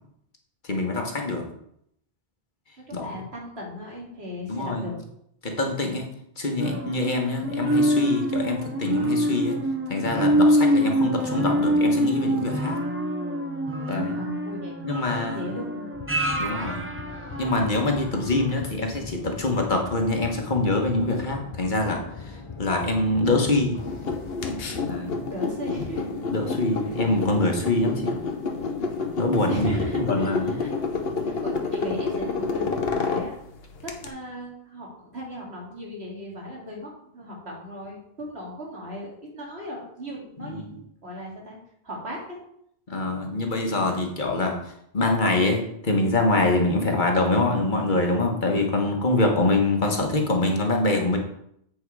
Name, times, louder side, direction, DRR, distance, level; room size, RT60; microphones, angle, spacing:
voice 1, 0.7-1.4 2.9-3.2 4.5-4.8 5.4-6.1 6.4-9.6 9.9-12.8 13.9-14.2 14.8-15.4 16.4-16.8 17.4-23.8 24.8-25.2 26.3-28.2 29.2-30.6 40.5-40.6 42.9-44.6 44.9-51.2, left 2 dB, 50° left, 2 dB, 1.4 m, -24 dB
voice 2, 2.8-5.0 14.1-14.8 15.3-15.9 25.3-26.1 26.9-27.0 29.4-30.7 31.2-33.3 33.8-41.6 41.8-42.4, left 1 dB, 85° right, -2 dB, 2.5 m, -36 dB
sound 1, 6.6-18.1 18.5-18.6, equal, 15° right, 0.7 m, -25 dB
sound 2, 15.9-24.9, left 5 dB, 35° left, 0.7 m, -40 dB
sound 3, 23.8-34.1, left 4 dB, 70° left, 1.1 m, -29 dB
8.6 x 4.6 x 4.7 m, 0.72 s
omnidirectional pair, 1.1 m